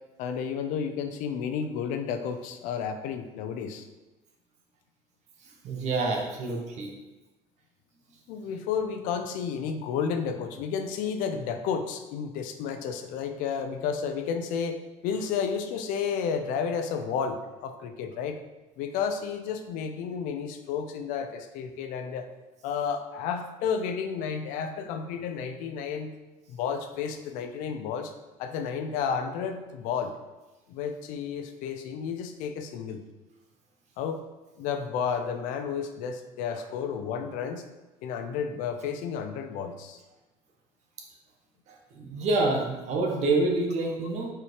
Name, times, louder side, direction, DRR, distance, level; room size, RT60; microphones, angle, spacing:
voice 1, 0.2-3.9 8.3-18.4 18.8-22.3 22.6-26.1 26.5-28.1 28.4-30.2 30.7-33.0 34.0-34.2 34.6-37.6 38.0-40.0, left 6 dB, 75° left, 7 dB, 0.8 m, -32 dB
voice 2, 5.4-6.9 36.5-36.6 41.7-44.3, right 2 dB, 60° right, 0 dB, 1.6 m, -28 dB
5.9 x 4.9 x 4.8 m, 1.1 s
supercardioid pair, 105°, 14 cm